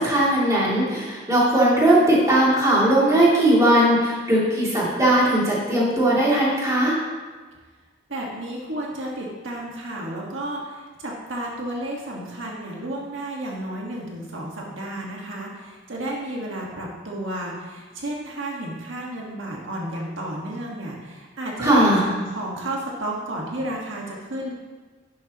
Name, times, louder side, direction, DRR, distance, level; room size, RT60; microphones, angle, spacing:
voice 1, 0.0-7.0 21.6-22.1, right 1 dB, 15° right, -7 dB, 2.6 m, -19 dB
voice 2, 8.1-24.5, right 1 dB, 70° right, -2 dB, 1.6 m, -32 dB
11.0 x 11.0 x 2.9 m, 1.4 s
head